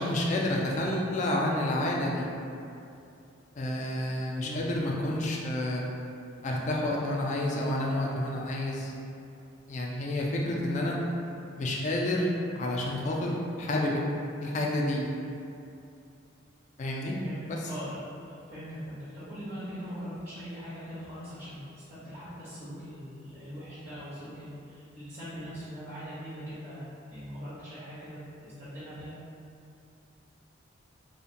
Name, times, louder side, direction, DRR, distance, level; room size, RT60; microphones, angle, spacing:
voice 1, 0.0-2.3 3.6-5.8 6.4-8.9 9.7-11.0 11.6-14.0 14.4-15.1 16.8-17.2 17.5-17.6, left 1 dB, 40° left, -2 dB, 0.3 m, -29 dB
voice 2, 17.2-18.0 18.2-29.1, equal, 35° right, -12 dB, 0.6 m, -41 dB
2.8 x 2.1 x 2.5 m, 2.6 s
head